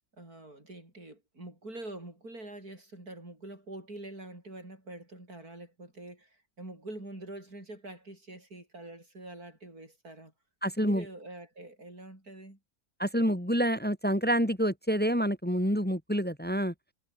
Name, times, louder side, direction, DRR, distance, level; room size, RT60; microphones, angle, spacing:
voice 1, 0.1-10.3 10.8-12.6, right 2 dB, 90° right, 8.8 m, -45 dB
voice 2, 10.6-11.0 13.0-16.7, equal, 5° left, 2.9 m, -27 dB
omnidirectional pair, 1.5 m